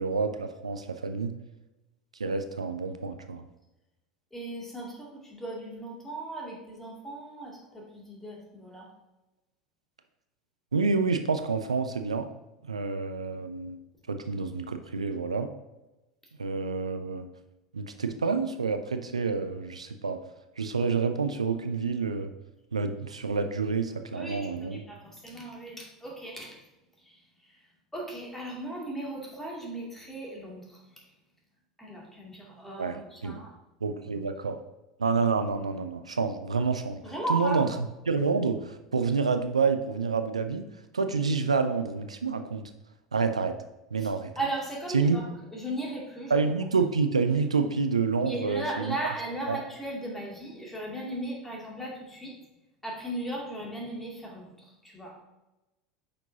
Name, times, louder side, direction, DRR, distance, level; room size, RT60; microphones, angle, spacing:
voice 1, 0.0-1.4 2.2-3.4 10.7-12.3 12.6-13.8 14.1-15.5 16.4-17.3 17.7-20.2 20.6-22.3 22.7-24.8 32.8-33.4 33.8-34.6 35.0-37.0 37.3-37.6 38.1-40.6 40.9-42.6 43.1-43.5 43.9-44.3 44.9-45.2 46.3-48.9 49.5-49.6, right 4 dB, 80° right, 8 dB, 0.5 m, -28 dB
voice 2, 4.3-8.9 24.1-26.6 27.0-31.0 31.8-33.5 34.1-34.2 37.0-37.6 44.0-44.1 44.4-46.4 48.2-52.4 52.8-55.1, right 1 dB, 10° left, -2 dB, 2.5 m, -37 dB
8.4 x 5.9 x 2.8 m, 1.0 s
figure-of-eight pair, 80°, 3 cm